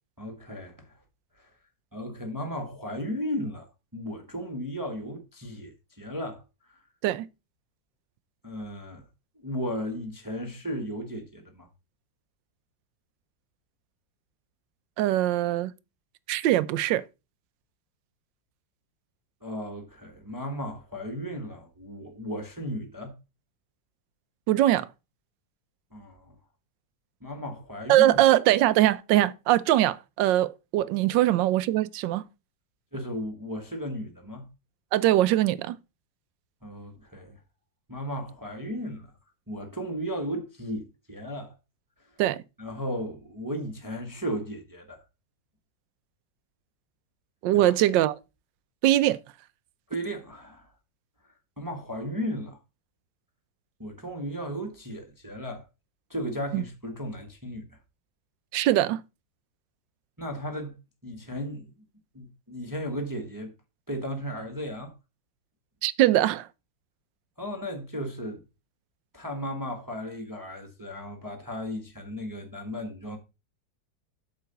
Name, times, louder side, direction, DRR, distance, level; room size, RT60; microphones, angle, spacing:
voice 1, 0.2-0.9 1.4-1.5 1.9-6.4 6.7-6.8 8.4-9.0 9.4-11.7 19.4-23.2 25.9-26.3 27.2-28.2 31.1-31.3 32.9-34.5 36.6-37.4 37.9-39.1 39.5-41.5 42.6-45.0 47.5-47.7 49.9-50.7 51.6-52.6 53.8-55.7 56.1-57.8 60.2-60.7 61.0-61.7 62.1-63.5 63.9-64.9 67.4-68.4 69.1-73.2, equal, 10° right, 1.1 m, -35 dB
voice 2, 15.0-15.7 16.3-17.0 24.5-24.9 27.9-32.2 34.9-35.8 42.2-42.4 47.4-48.2 48.8-49.2 56.5-56.6 58.5-59.0 65.8-66.5, right 14 dB, 80° right, 1.3 m, -22 dB
8.5 x 3.8 x 6.7 m
omnidirectional pair, 2.0 m